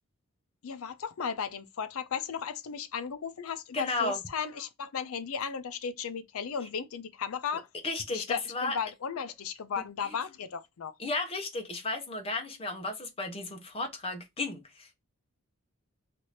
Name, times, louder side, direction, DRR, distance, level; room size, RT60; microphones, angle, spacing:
voice 1, 0.6-7.7 8.1-11.0, left 6 dB, 75° left, 0.5 m, -35 dB
voice 2, 3.7-4.2 7.8-8.8 10.0-10.1 11.0-14.9, left 2 dB, 25° left, 0.6 m, -34 dB
2.8 x 2.5 x 3.1 m
head